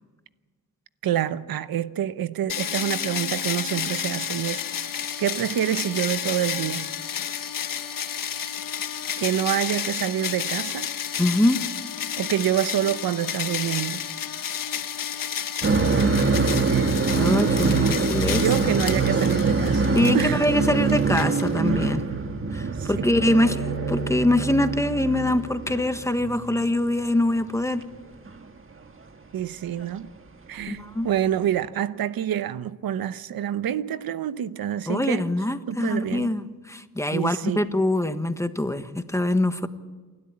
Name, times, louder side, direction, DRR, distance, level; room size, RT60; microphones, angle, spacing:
voice 1, 1.0-6.9 9.2-10.9 12.2-14.0 16.7-17.0 18.3-20.4 22.6-23.0 29.3-30.1 30.5-35.3 35.7-36.3 37.1-37.7, right 10 dB, 90° right, 0.9 m, -27 dB
sound 1, 2.5-21.8, left 8 dB, 65° left, 1.2 m, -31 dB
voice 2, 11.2-11.6 17.2-18.5 19.9-22.0 22.5-27.8 30.7-31.1 34.9-39.7, left 1 dB, 10° left, 1.4 m, -24 dB
sound 2, 15.6-26.6 26.9-27.0 28.3-28.4 29.8-29.9 31.4-31.5, right 4 dB, 35° right, 1.7 m, -24 dB
28.0 x 12.5 x 8.7 m
cardioid pair, 95°, 35 cm